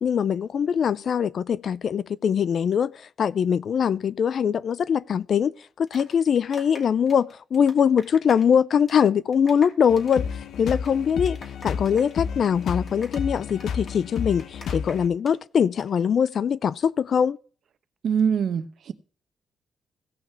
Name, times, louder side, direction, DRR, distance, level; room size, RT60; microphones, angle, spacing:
voice 1, 0.0-2.9 3.2-5.5 5.8-10.3 10.6-11.4 11.6-17.4, left 7 dB, 50° left, 0.4 m, -22 dB
sound 1, 5.6-8.5 8.8-9.1 9.3-15.3 15.6-15.9, left 2 dB, 30° left, 2.6 m, -45 dB
sound 2, 9.9-15.1, left 7 dB, 70° left, 0.8 m, -31 dB
voice 2, 18.0-18.9, right 7 dB, 60° right, 0.9 m, -23 dB
16.5 x 5.7 x 4.4 m
cardioid pair, 155°, 0 cm